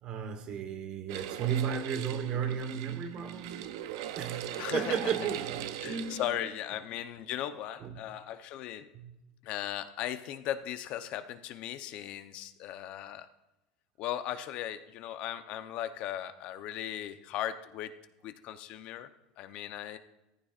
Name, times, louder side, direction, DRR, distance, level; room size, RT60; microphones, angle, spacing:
voice 1, 0.0-3.7 4.2-6.5 7.8-7.9 8.9-9.1, right 7 dB, 40° right, 1.3 m, -34 dB
sound 1, 1.1-6.3, right 12 dB, 80° right, 0.7 m, -40 dB
voice 2, 4.6-5.0 5.8-8.9 9.4-13.3 14.0-17.9 18.2-19.1 19.4-20.0, left 11 dB, 50° left, 0.8 m, -37 dB
15.0 x 14.0 x 2.5 m
supercardioid pair, 135°, 2 cm